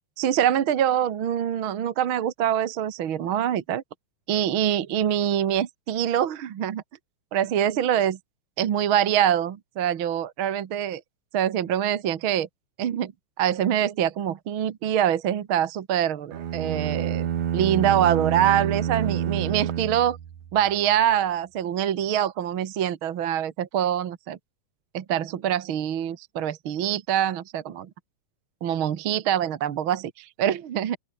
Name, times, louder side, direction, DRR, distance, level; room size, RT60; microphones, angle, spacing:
voice 1, 0.2-3.8 4.3-6.8 7.3-8.2 8.6-11.0 11.3-12.5 12.8-13.1 13.4-17.3 17.5-20.2 20.5-24.4 24.9-27.9 28.6-31.0, right 10 dB, 50° right, 1.8 m, -24 dB
sound 1, 16.3-20.7, right 9 dB, 85° right, 3.5 m, -28 dB
open air
omnidirectional pair, 3.5 m